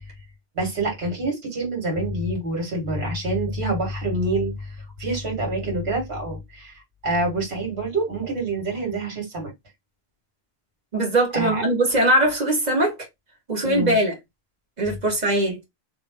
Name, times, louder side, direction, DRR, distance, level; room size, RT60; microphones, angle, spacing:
voice 1, 0.6-4.7 5.0-6.7 7.0-9.5 11.3-11.6 13.6-14.0, right 2 dB, 80° right, 2.0 m, -26 dB
voice 2, 10.9-13.0 13.5-14.1 14.8-15.6, right 1 dB, 45° right, 1.6 m, -21 dB
3.1 x 2.5 x 3.4 m
omnidirectional pair, 1.1 m